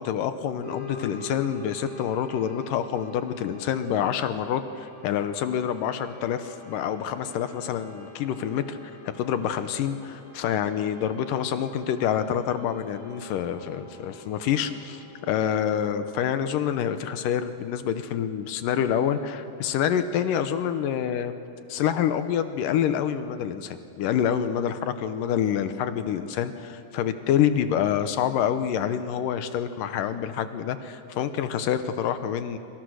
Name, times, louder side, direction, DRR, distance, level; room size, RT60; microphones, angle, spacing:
voice 1, 0.0-8.8 9.1-21.3 21.7-32.6, left 9 dB, 75° left, 10 dB, 2.4 m, -27 dB
sound 1, 0.6-17.7, left 2 dB, 50° right, 8.5 m, -46 dB
26.5 x 25.5 x 6.4 m, 2.6 s
omnidirectional pair, 4.1 m